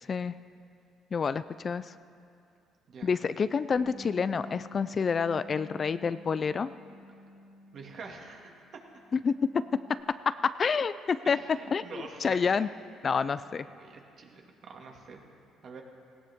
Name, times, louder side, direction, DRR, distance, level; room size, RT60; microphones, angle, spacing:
voice 1, 1.1-1.9 3.0-6.7 9.1-9.3 10.3-11.4 11.7-11.8 12.2-12.7 13.0-13.7, left 5 dB, 35° left, 14 dB, 0.3 m, -28 dB
Bass guitar, 3.8-8.5 8.8-10.0, left 1 dB, 35° right, 2.7 m, -50 dB
voice 2, 7.7-8.8 11.2-12.6 13.4-15.2 15.6-15.8, right 4 dB, 50° right, 1 dB, 2.1 m, -46 dB
18.0 x 17.0 x 3.6 m, 2.7 s
cardioid pair, 110°, 0 cm